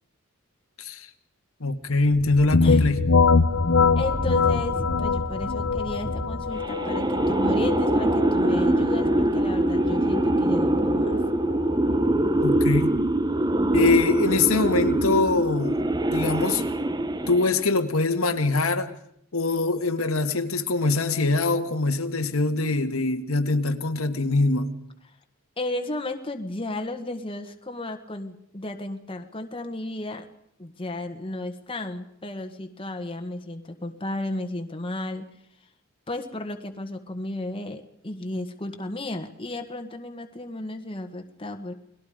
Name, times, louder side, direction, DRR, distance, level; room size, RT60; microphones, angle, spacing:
voice 1, 1.6-3.0 12.4-12.9 13.7-15.8 16.1-16.6 17.3-18.9 19.3-24.7, left 3 dB, 85° left, 6 dB, 1.9 m, -23 dB
Wind, 1.8-6.7, equal, 65° right, 6.3 m, -34 dB
sound 1, 2.5-12.1, left 4 dB, 65° left, 0.8 m, -24 dB
voice 2, 4.0-11.2 25.6-30.3 30.6-35.3 36.1-41.7, left 1 dB, 25° left, 5 dB, 1.7 m, -34 dB
sound 2, 6.6-17.7, right 1 dB, 20° right, 0.9 m, -23 dB
29.5 x 21.0 x 5.2 m, 0.70 s
head